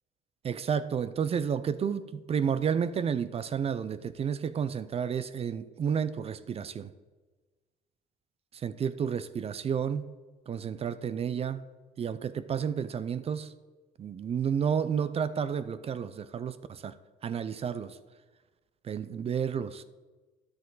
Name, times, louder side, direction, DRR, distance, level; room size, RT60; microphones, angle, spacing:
voice 1, 0.4-6.9 8.5-10.1 10.5-11.6 12.0-13.5 14.0-16.9 17.2-18.0 18.8-19.8, right 7 dB, 35° right, 14 dB, 0.5 m, -31 dB
11.0 x 7.8 x 3.9 m, 1.3 s
cardioid pair, 110°, 17 cm